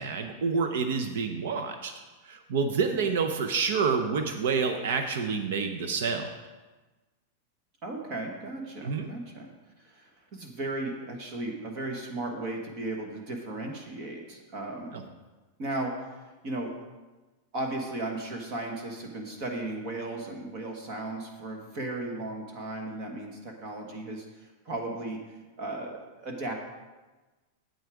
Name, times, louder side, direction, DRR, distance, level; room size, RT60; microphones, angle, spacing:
voice 1, 0.0-1.9 2.2-6.3 8.8-9.1 14.9-15.0, right 5 dB, 60° right, 6 dB, 0.7 m, -28 dB
voice 2, 7.8-9.5 9.8-15.0 15.6-15.9 16.4-16.8 17.5-25.2 25.6-26.5, right 2 dB, 30° right, 2 dB, 1.2 m, -35 dB
8.1 x 8.0 x 4.9 m, 1.2 s
supercardioid pair, 175°, 0 cm